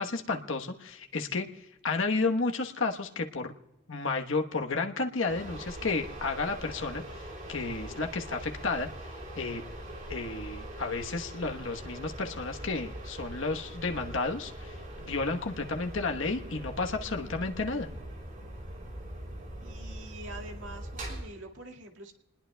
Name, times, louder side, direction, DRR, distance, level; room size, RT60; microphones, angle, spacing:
voice 1, 0.0-3.5 3.9-8.9 9.4-9.6 10.1-17.9, left 3 dB, 70° left, 4 dB, 1.1 m, -32 dB
sound 1, 5.3-21.2, right 1 dB, 40° right, 4.2 m, -42 dB
voice 2, 19.6-22.1, right 1 dB, 65° right, 2 dB, 2.1 m, -45 dB
27.5 x 20.5 x 2.3 m, 0.97 s
head